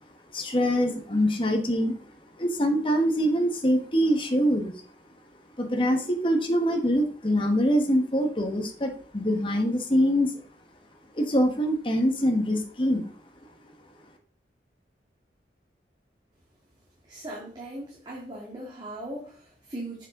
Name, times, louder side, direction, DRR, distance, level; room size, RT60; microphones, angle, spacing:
voice 1, 0.3-2.0 2.4-4.8 5.6-10.3 11.1-13.1, equal, 30° left, 3 dB, 1.3 m, -24 dB
voice 2, 17.0-20.1, right 1 dB, 25° right, -4 dB, 2.0 m, -39 dB
7.9 x 6.1 x 3.8 m, 0.41 s
head